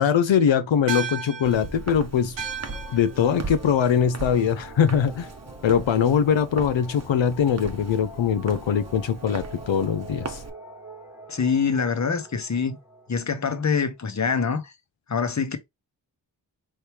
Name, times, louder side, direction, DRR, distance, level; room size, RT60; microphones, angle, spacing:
voice 1, 0.0-2.4 2.9-5.3 5.6-10.4, left 8 dB, 80° left, 0.6 m, -22 dB
sound 1, 0.9-5.6, right 6 dB, 75° right, 1.1 m, -37 dB
Walk footsteps, 1.4-10.5, right 3 dB, 35° right, 0.8 m, -38 dB
sound 2, 2.4-14.3, right 1 dB, 5° right, 1.2 m, -46 dB
voice 2, 11.3-12.8 13.1-14.7 15.1-15.6, left 5 dB, 40° left, 0.9 m, -25 dB
4.2 x 3.1 x 3.3 m
wide cardioid pair, 70°, 45 cm